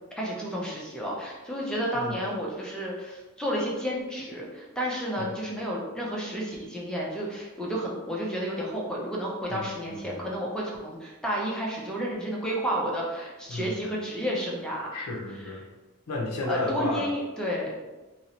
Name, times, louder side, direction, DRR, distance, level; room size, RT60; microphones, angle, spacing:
voice 1, 0.2-14.9 16.5-17.8, equal, 5° left, -4 dB, 0.4 m, -31 dB
voice 2, 9.5-10.2 13.5-13.8 14.9-15.6 16.1-17.1, left 2 dB, 75° left, 0 dB, 0.6 m, -33 dB
2.6 x 2.0 x 2.7 m, 1.2 s
head